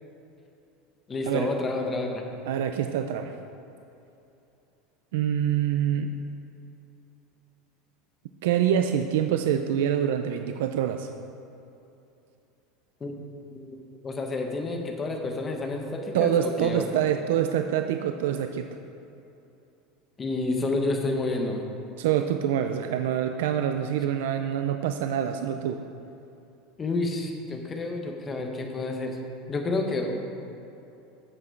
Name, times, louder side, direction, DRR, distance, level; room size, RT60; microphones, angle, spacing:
voice 1, 1.1-2.2 13.0-13.2 13.4-13.8 14.0-16.9 20.2-21.7 26.8-29.2 29.5-30.2, left 2 dB, 15° left, 2 dB, 0.9 m, -29 dB
voice 2, 2.5-3.3 5.1-6.1 8.4-11.1 16.1-18.7 22.0-25.8, right 9 dB, 80° right, 7 dB, 0.4 m, -26 dB
9.8 x 7.7 x 4.6 m, 2.8 s
supercardioid pair, 170°, 0 cm